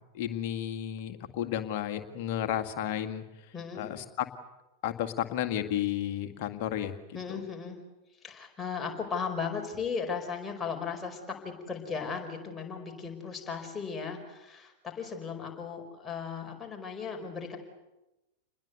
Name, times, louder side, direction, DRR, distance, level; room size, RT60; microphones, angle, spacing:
voice 1, 0.1-3.2 3.7-4.3 4.8-7.2, left 11 dB, 45° left, 7 dB, 2.1 m, -32 dB
voice 2, 3.5-3.9 7.1-7.8 8.2-17.6, left 6 dB, 15° left, 2 dB, 4.8 m, -36 dB
28.5 x 21.0 x 8.1 m, 0.99 s
figure-of-eight pair, 90°, 0 cm